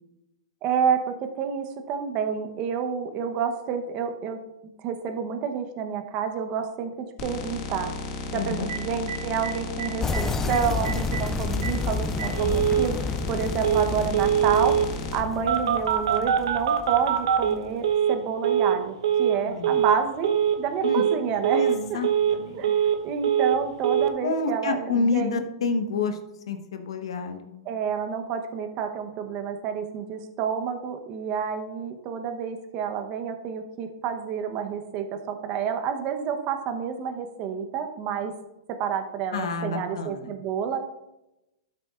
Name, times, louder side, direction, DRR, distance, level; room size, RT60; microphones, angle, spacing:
voice 1, 0.6-4.4 4.8-7.9 8.3-14.7 15.1-22.0 22.5-22.7 23.0-25.4 27.7-38.3 38.8-40.8, right 7 dB, 40° right, 6 dB, 0.9 m, -29 dB
sound 1, 7.2-15.2, left 3 dB, 40° left, 1.6 m, -34 dB
voice 2, 8.3-8.7 19.5-19.8 20.8-21.0 21.5-22.7 24.2-26.2 26.5-27.6 39.3-40.3, left 4 dB, 80° left, 6 dB, 1.1 m, -29 dB
Telephone, 8.7-8.8 9.1-9.2 9.4-9.5 9.8-10.2 10.5-10.6 10.8-11.2 11.6-11.7 12.2-12.9 13.6-13.9 14.1-14.9 15.5-18.2 18.4-18.8 19.0-19.4 19.6-20.0 20.2-20.6 20.8-21.2 21.4-21.8 22.0-23.0 23.2-23.6 23.8-24.1, right 9 dB, 80° right, 0.9 m, -23 dB
sound 2, 10.0-17.7, left 4 dB, 15° left, 0.4 m, -31 dB
12.5 x 6.6 x 2.5 m, 0.93 s
hypercardioid pair, 130°, 3 cm